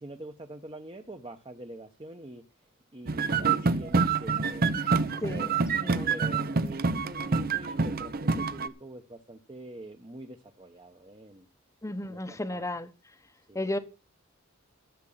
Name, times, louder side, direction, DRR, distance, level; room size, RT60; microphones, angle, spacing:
voice 1, 0.0-2.4 2.9-4.7 5.3-5.6 6.1-11.5 12.0-12.7 13.5-13.7, right 1 dB, 25° right, 1.0 m, -45 dB
sound 1, 3.1-8.7, right 4 dB, 45° right, 0.7 m, -27 dB
voice 2, 5.2-6.2 11.8-12.9 13.5-13.8, left 1 dB, 15° left, 0.9 m, -34 dB
13.5 x 7.5 x 5.8 m
head